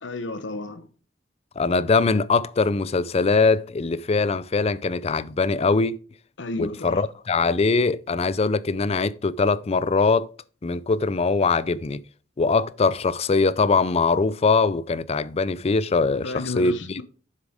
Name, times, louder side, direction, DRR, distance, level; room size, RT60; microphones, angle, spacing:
voice 1, 0.0-0.9 6.4-7.1 16.2-17.0, left 2 dB, 75° left, 0.9 m, -32 dB
voice 2, 1.6-6.0 6.6-10.3 10.6-12.0 12.4-17.0, left 4 dB, 35° left, 0.4 m, -22 dB
7.5 x 7.0 x 5.0 m
head